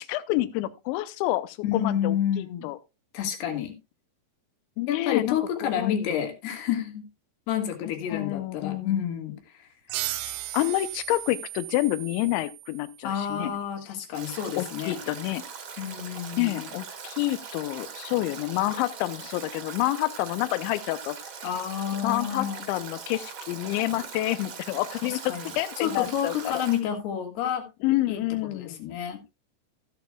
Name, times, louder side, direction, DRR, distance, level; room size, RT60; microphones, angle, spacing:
voice 1, 0.0-2.8 4.8-6.2 7.8-9.1 10.5-13.5 14.6-15.4 16.4-21.2 22.0-26.6 27.8-28.8, left 17 dB, 85° left, 3.1 m, -28 dB
voice 2, 1.6-2.7 3.1-3.7 4.9-7.0 7.5-9.4 13.0-15.0 15.8-16.7 21.4-22.6 25.3-25.4 25.8-27.7 28.1-28.2 28.5-29.2, left 9 dB, 70° left, 3.7 m, -29 dB
sound 1, 9.9-13.1, right 16 dB, 80° right, 2.6 m, -36 dB
Stream / Drip / Trickle dribble, 14.1-26.8, right 6 dB, 55° right, 1.4 m, -41 dB
14.5 x 9.4 x 2.3 m
omnidirectional pair, 5.2 m